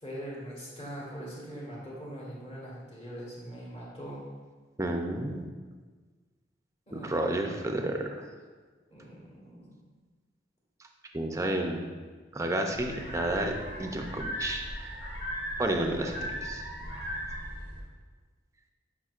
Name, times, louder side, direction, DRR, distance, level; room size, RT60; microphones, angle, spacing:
voice 1, 0.0-4.2 6.9-7.6 8.9-9.7, equal, 30° left, -5 dB, 1.8 m, -42 dB
voice 2, 4.8-5.4 6.9-8.3 11.1-11.8 12.3-15.1 15.6-16.6, right 1 dB, 15° right, 3 dB, 0.5 m, -31 dB
sound 1, 12.7-17.8, equal, 75° left, 1.9 m, -37 dB
9.0 x 5.1 x 2.5 m, 1.4 s
head